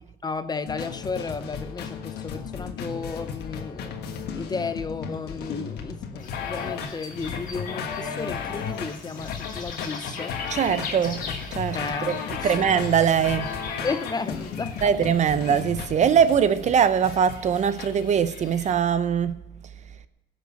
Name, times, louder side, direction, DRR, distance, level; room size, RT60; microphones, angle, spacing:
voice 1, 0.2-3.9 4.3-10.3 11.7-12.6 13.8-14.8, left 4 dB, 25° left, 0.6 m, -33 dB
sound 1, 0.7-17.9, left 6 dB, 75° left, 1.5 m, -34 dB
sound 2, 6.2-18.7, left 4 dB, 50° left, 2.5 m, -42 dB
voice 2, 10.5-12.2 12.4-13.5 14.8-19.4, right 7 dB, 45° right, 0.7 m, -22 dB
16.5 x 6.5 x 7.0 m
cardioid pair, 110°, 17 cm